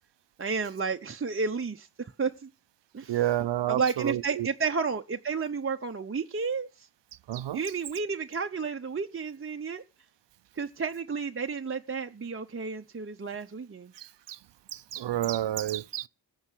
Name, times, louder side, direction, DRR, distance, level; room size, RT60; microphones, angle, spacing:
voice 1, 0.4-2.5 2.9-3.2 3.7-6.9 7.5-9.8 10.5-13.9, right 5 dB, 30° right, 0.7 m, -32 dB
voice 2, 3.1-4.5 7.3-7.6 14.0-14.4 14.7-16.1, right 13 dB, 75° right, 0.5 m, -30 dB
16.0 x 5.6 x 8.3 m
cardioid pair, 60°, 43 cm